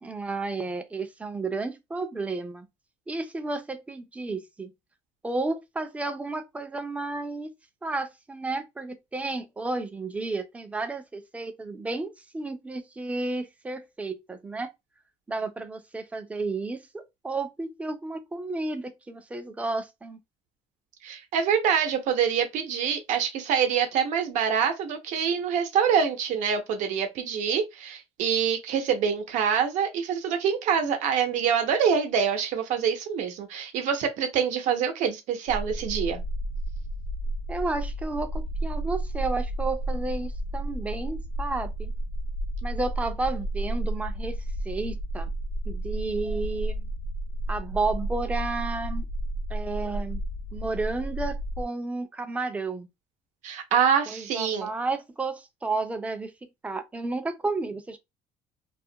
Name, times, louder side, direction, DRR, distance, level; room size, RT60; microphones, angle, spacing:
voice 1, 0.0-2.7 3.1-4.7 5.2-7.5 7.8-14.7 15.3-20.2 37.5-41.9 42.6-44.4 44.6-45.3 45.7-46.9 47.5-49.1 49.5-50.2 50.5-52.9 54.1-56.3 56.6-58.0, right 3 dB, 10° right, 0.3 m, -32 dB
voice 2, 21.0-36.2 53.4-54.7, right 7 dB, 70° right, 0.7 m, -25 dB
sound 1, 35.5-51.6, right 1 dB, 85° left, 0.5 m, -32 dB
2.3 x 2.1 x 2.7 m
cardioid pair, 145°, 13 cm